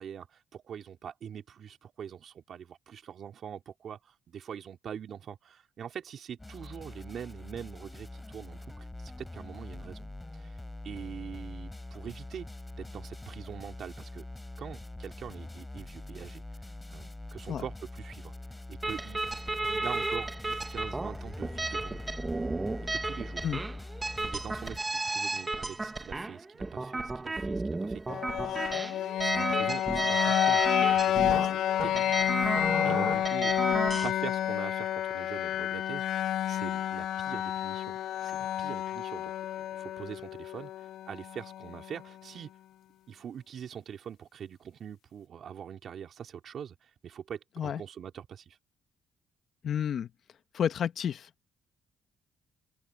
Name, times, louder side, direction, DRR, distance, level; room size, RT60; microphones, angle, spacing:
voice 1, 0.0-10.6 10.8-12.5 12.7-14.2 14.6-16.4 16.9-18.3 18.7-19.2 19.7-22.1 22.9-23.5 24.2-28.7 29.2-31.5 31.8-33.5 34.0-36.0 36.5-39.3 39.7-42.5 43.1-48.6, right 8 dB, 60° right, 4.0 m, -43 dB
sound 1, 6.4-24.8, left 2 dB, 15° left, 4.8 m, -43 dB
sound 2, 18.8-34.1, right 2 dB, 20° right, 1.8 m, -33 dB
sound 3, 28.1-42.0, left 11 dB, 75° left, 0.4 m, -30 dB
voice 2, 49.6-50.1 50.5-51.3, left 8 dB, 60° left, 1.2 m, -30 dB
open air
cardioid pair, 90°, 0 cm